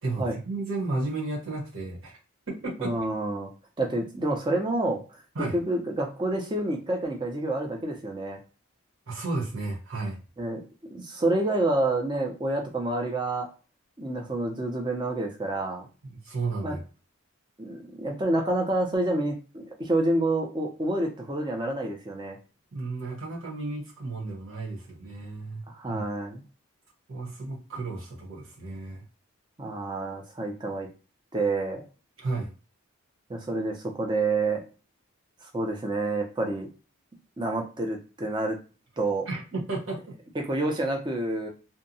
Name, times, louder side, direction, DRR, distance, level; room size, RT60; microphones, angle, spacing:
voice 1, 0.0-2.2 2.5-2.9 5.3-5.6 9.1-10.2 16.0-16.8 22.7-26.1 27.1-29.0 32.2-32.5 39.3-40.2, right 3 dB, 65° right, -1 dB, 1.0 m, -33 dB
voice 2, 2.8-3.5 3.8-5.0 5.5-8.4 10.4-10.6 10.9-13.5 14.0-15.9 16.6-16.8 17.6-22.4 25.7-26.4 29.6-30.9 31.3-31.8 33.3-34.6 35.5-36.7 37.4-38.6 39.0-39.3 40.3-41.5, right 2 dB, 20° right, 2 dB, 0.5 m, -28 dB
2.7 x 2.2 x 2.6 m, 0.34 s
head